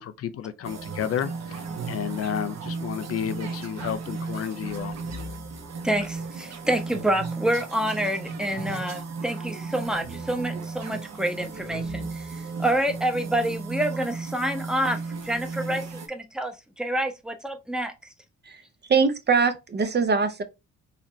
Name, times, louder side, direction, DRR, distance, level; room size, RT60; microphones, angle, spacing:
voice 1, 0.0-5.0, left 9 dB, 50° left, 0.4 m, -31 dB
sound 1, 0.6-16.1, right 4 dB, 60° right, 1.2 m, -35 dB
voice 2, 5.8-17.9, right 1 dB, ahead, 0.8 m, -28 dB
voice 3, 18.9-20.4, right 5 dB, 35° right, 0.6 m, -22 dB
4.1 x 2.8 x 3.1 m
cardioid pair, 90°, 30 cm